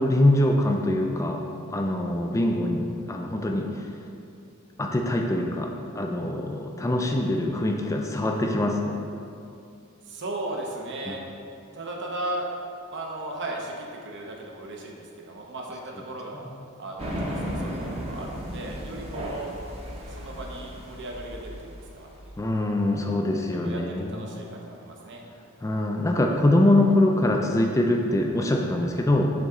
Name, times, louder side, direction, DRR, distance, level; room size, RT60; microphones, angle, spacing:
voice 1, 0.0-1.4 1.7-3.9 4.8-8.9 11.1-11.2 22.4-24.2 25.6-29.3, left 1 dB, 15° left, 2 dB, 0.3 m, -23 dB
voice 2, 10.0-11.2 11.7-12.5 12.9-16.4 16.8-19.5 20.1-22.1 23.6-25.2, right 1 dB, 60° right, -1 dB, 0.8 m, -36 dB
sound 1, 17.0-22.3, equal, 30° right, 0.9 m, -35 dB
7.0 x 3.8 x 3.7 m, 2.5 s
head